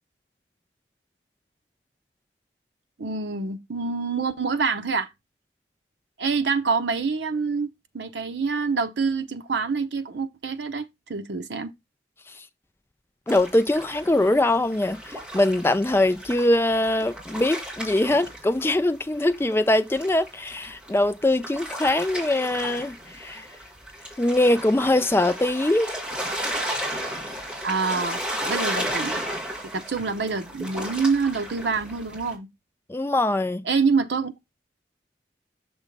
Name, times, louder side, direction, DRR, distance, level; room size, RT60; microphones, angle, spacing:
voice 1, 3.0-5.1 6.2-10.8 11.1-11.7 27.6-29.2 29.7-32.5 33.7-34.3, right 4 dB, 80° right, 0.7 m, -26 dB
voice 2, 13.3-23.5 24.2-25.9 32.9-33.7, left 1 dB, 15° left, 0.3 m, -22 dB
sound 1, 13.3-19.0 19.3-32.3, right 1 dB, 5° right, 2.2 m, -34 dB
6.2 x 3.1 x 5.2 m
head